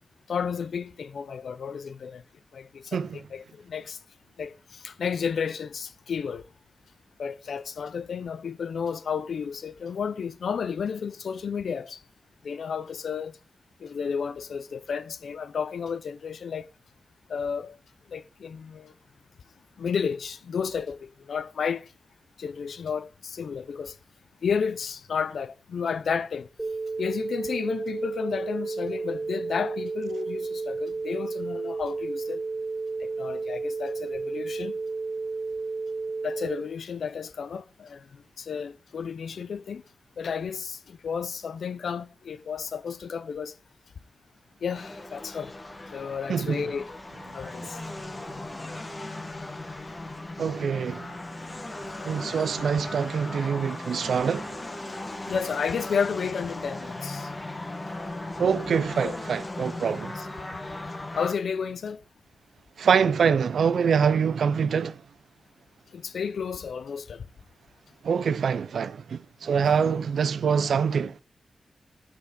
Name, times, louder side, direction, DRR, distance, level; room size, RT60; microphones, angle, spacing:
voice 1, 0.3-2.2 2.5-4.0 4.4-6.4 7.2-12.0 12.4-13.4 13.8-16.7 17.3-17.8 18.1-18.9 19.8-21.9 22.4-24.0 24.4-26.5 27.0-32.4 33.0-34.8 36.2-39.8 40.2-43.5 44.6-45.6 45.9-46.9 47.3-47.8 55.3-57.3 59.0-59.2 60.1-60.3 61.2-62.0 65.9-67.3, left 6 dB, 75° left, 0.6 m, -32 dB
sound 1, 26.6-36.6, right 3 dB, ahead, 1.3 m, -32 dB
sound 2, 44.7-61.3, left 2 dB, 25° left, 1.4 m, -37 dB
voice 2, 50.4-51.1 52.0-54.5 58.4-60.1 62.8-65.0 68.0-71.1, right 6 dB, 80° right, 0.5 m, -25 dB
12.5 x 5.7 x 3.9 m
wide cardioid pair, 125°, 0 cm